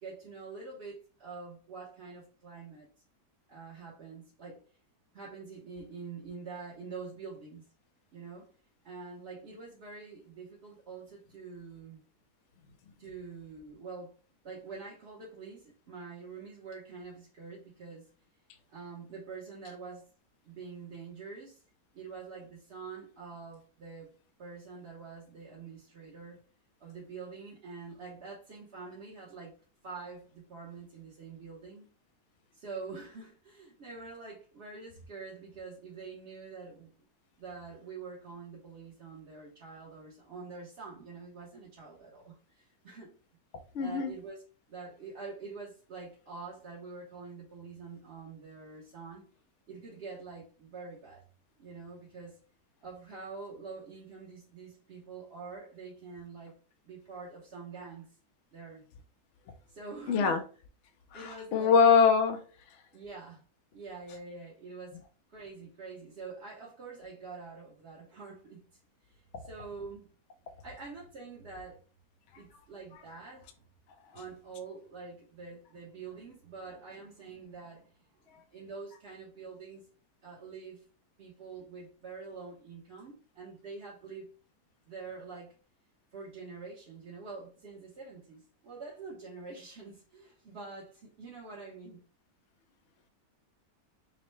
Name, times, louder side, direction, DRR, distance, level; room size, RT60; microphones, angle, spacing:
voice 1, 0.0-2.9 3.5-4.6 5.1-7.7 8.1-8.5 8.8-12.0 13.0-14.1 14.4-18.1 18.7-20.1 20.4-21.6 21.9-24.1 24.4-26.4 26.8-29.5 29.8-31.9 32.5-36.9 37.4-43.1 43.8-44.4 44.7-49.2 49.7-51.2 51.6-52.4 52.8-56.6 56.8-58.1 58.5-58.9 59.7-60.4 61.1-61.8 62.9-63.4 63.7-65.0 65.3-68.6 69.1-70.1 70.6-71.8 72.4-73.6 74.1-79.8 80.2-80.8 81.2-84.3 84.9-85.5 86.1-92.0, right 4 dB, 50° right, 0.9 m, -46 dB
voice 2, 43.7-44.1 60.1-60.4 61.1-62.4, left 6 dB, 70° left, 0.6 m, -23 dB
5.4 x 2.1 x 3.1 m
omnidirectional pair, 1.8 m